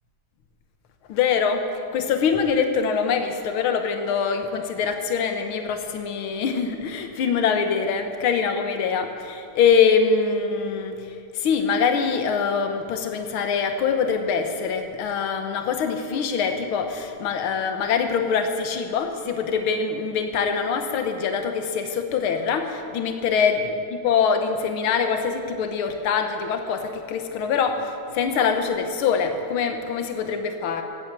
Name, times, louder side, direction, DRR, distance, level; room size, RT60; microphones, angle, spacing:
voice 1, 1.1-1.7 1.9-11.0 11.3-30.8, left 6 dB, 75° left, 6 dB, 1.9 m, -24 dB
15.0 x 9.0 x 7.5 m, 2.4 s
omnidirectional pair, 2.3 m